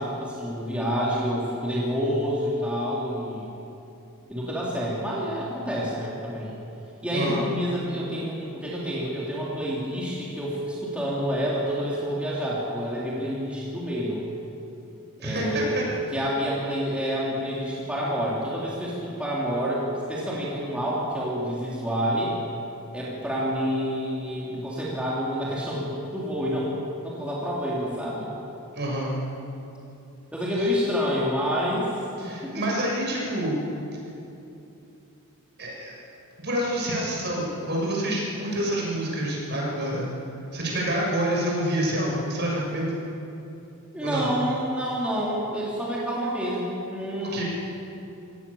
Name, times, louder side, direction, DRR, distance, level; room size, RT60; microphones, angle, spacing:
voice 1, 0.0-3.5 4.3-6.5 7.0-14.3 15.2-15.8 16.1-22.3 22.9-26.7 27.0-28.3 30.3-32.6 43.9-47.4, equal, 5° right, -7 dB, 3.5 m, -28 dB
voice 2, 7.1-7.4 15.2-15.8 28.7-29.1 32.2-33.6 35.6-36.0 36.4-40.1 40.5-42.9 44.0-44.3 47.3-47.4, right 1 dB, 50° right, -3 dB, 6.9 m, -27 dB
26.5 x 17.5 x 7.3 m, 2.8 s
head